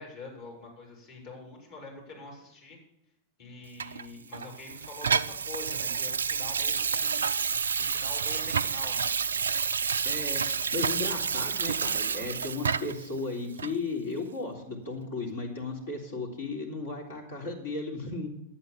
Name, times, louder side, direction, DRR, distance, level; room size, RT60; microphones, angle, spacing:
voice 1, 0.0-2.8 3.4-7.5 7.8-9.1, left 3 dB, 50° left, -2 dB, 6.0 m, -45 dB
Water tap faucet / Sink (filling or washing), 3.8-13.1 13.6-13.7, right 6 dB, 70° right, 0.3 m, -29 dB
voice 2, 10.0-18.3, left 3 dB, 65° left, -1 dB, 3.6 m, -35 dB
11.0 x 8.8 x 7.2 m, 0.86 s
figure-of-eight pair, 90°, 0 cm